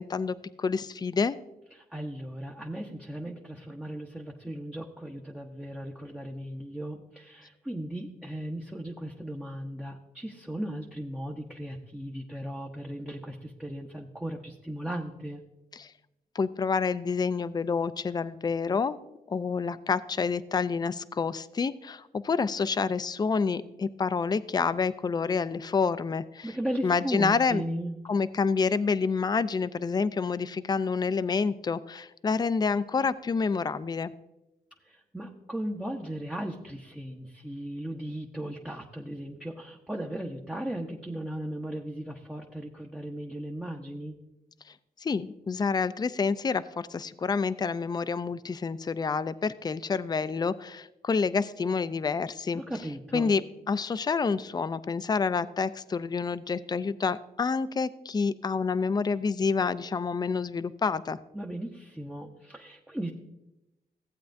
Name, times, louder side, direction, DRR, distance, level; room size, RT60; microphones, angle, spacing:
voice 1, 0.0-1.4 15.8-15.9 16.3-19.0 19.3-26.5 26.8-27.6 28.1-34.1 45.0-52.6 53.1-53.4 53.7-61.2, left 5 dB, 25° left, 15 dB, 0.4 m, -28 dB
voice 2, 1.7-15.4 26.4-27.9 34.8-44.2 52.5-53.3 61.3-63.1, right 1 dB, 5° right, 0 dB, 0.8 m, -37 dB
15.0 x 8.2 x 2.6 m, 0.93 s
cardioid pair, 75°, 17 cm